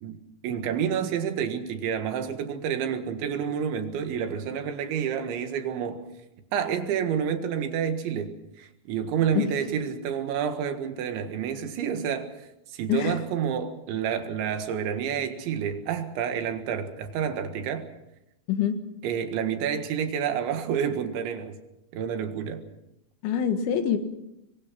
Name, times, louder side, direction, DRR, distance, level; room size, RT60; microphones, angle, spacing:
voice 1, 0.0-6.1 6.5-17.9 19.0-21.6 21.9-22.6, right 8 dB, 80° right, 4.0 m, -29 dB
voice 2, 12.9-13.2 18.5-18.8 23.2-24.0, left 8 dB, 80° left, 4.0 m, -25 dB
25.0 x 22.5 x 6.0 m
omnidirectional pair, 5.3 m